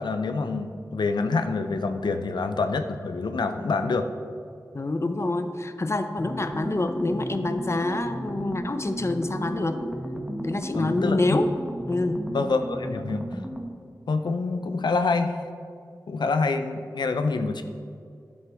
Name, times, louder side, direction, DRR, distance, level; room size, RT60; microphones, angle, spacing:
voice 1, 0.0-4.1 10.7-11.4 12.3-13.3 14.1-15.4 16.1-17.6, left 4 dB, 80° left, 8 dB, 0.6 m, -26 dB
voice 2, 4.7-9.8 10.4-11.5 11.9-12.2, left 2 dB, 40° left, 9 dB, 0.7 m, -26 dB
sound 1, 6.2-13.8, equal, 10° right, 1.2 m, -34 dB
11.5 x 7.8 x 3.5 m, 2.3 s
cardioid pair, 45°, 7 cm